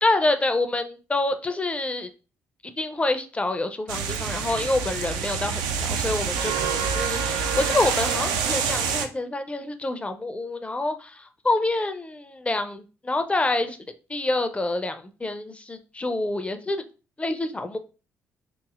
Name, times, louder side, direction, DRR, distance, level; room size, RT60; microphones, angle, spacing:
voice 1, 0.0-2.1 2.6-13.8 14.1-16.8 17.2-17.8, left 2 dB, 15° left, 8 dB, 0.4 m, -27 dB
sound 1, 3.9-9.1, right 6 dB, 65° right, 0.4 m, -26 dB
2.9 x 2.6 x 2.3 m, 0.33 s
figure-of-eight pair, 45°, 8 cm